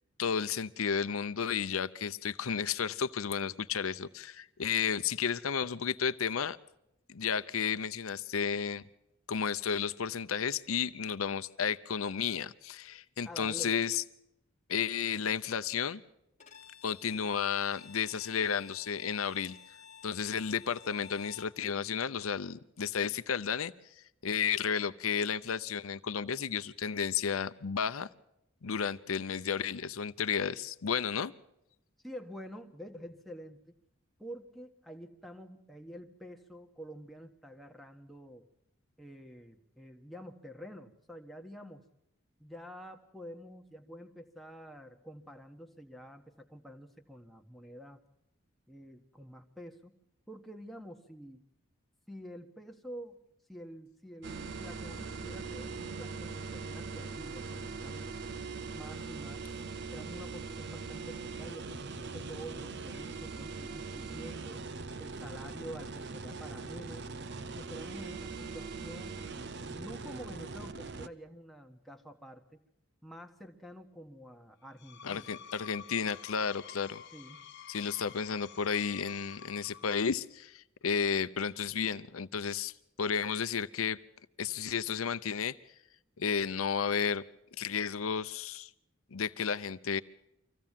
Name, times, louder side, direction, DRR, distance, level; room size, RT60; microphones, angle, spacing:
voice 1, 0.2-6.6 7.1-8.8 9.3-14.0 14.7-16.0 16.8-19.6 20.0-23.7 24.2-28.1 28.6-31.3 75.0-77.0 77.7-82.7 83.0-84.0 84.4-85.6 86.2-87.2 87.6-88.7 89.1-90.0, left 6 dB, 85° left, 12 dB, 0.7 m, -32 dB
voice 2, 13.2-13.8 32.0-33.6 34.2-38.4 39.0-41.8 42.4-48.0 48.7-49.9 50.3-51.4 52.1-53.2 53.5-58.1 58.7-59.4 59.9-64.7 65.0-67.1 67.5-69.3 69.6-72.6 73.0-75.3 77.1-77.4, equal, ahead, 3 dB, 1.4 m, -48 dB
Bowed string instrument, 16.4-21.6, left 8 dB, 30° left, 1.5 m, -53 dB
sound 1, 54.2-71.1, right 4 dB, 55° right, 0.8 m, -41 dB
Screech, 74.6-80.1, left 8 dB, 55° left, 0.9 m, -50 dB
25.0 x 16.0 x 7.4 m, 0.85 s
head